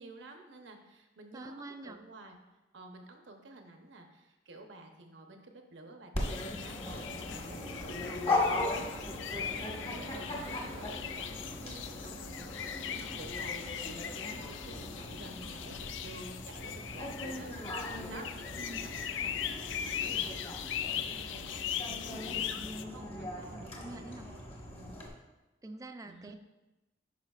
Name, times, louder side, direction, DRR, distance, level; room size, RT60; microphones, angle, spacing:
voice 1, 0.0-2.4 2.7-20.6 20.9-22.2 22.5-24.4 24.8-25.1 26.0-26.4, right 2 dB, 85° right, 4 dB, 0.9 m, -51 dB
voice 2, 1.3-2.0 12.9-13.2 18.6-19.0 23.4-24.3 25.6-26.3, right 2 dB, 20° right, 7 dB, 0.4 m, -47 dB
Dog, 6.1-25.1, left 2 dB, 35° left, 1.4 m, -39 dB
sound 1, 6.2-22.8, left 9 dB, 90° left, 0.4 m, -40 dB
11.5 x 4.9 x 2.4 m, 1.0 s
head